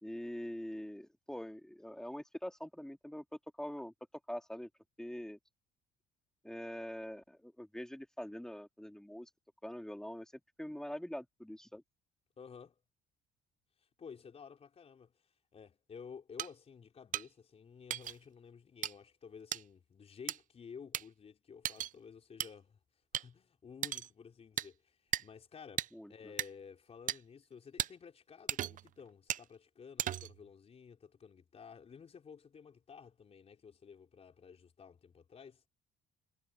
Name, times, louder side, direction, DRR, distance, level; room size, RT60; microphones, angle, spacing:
voice 1, 0.0-3.9 4.3-4.7 5.0-5.4 6.4-9.3 9.6-11.8 25.9-26.3, equal, 5° left, 2.5 m, -44 dB
voice 2, 12.4-12.8 13.8-22.8 23.1-35.7, left 6 dB, 35° left, 4.2 m, -53 dB
sound 1, 16.4-16.5 17.1-17.2 17.9-18.1 18.8-18.9 19.5-19.6 20.3-20.4 20.9-21.0 21.6-21.9 22.4-22.5 23.1-23.2 23.8-24.1 24.6-24.7 25.1-25.2 25.8-25.9 26.4-26.5 27.1-27.2 27.8-27.9 28.5-28.9 29.3-29.4 30.0-30.4, right 11 dB, 50° right, 0.6 m, -36 dB
cardioid pair, 110°, 17 cm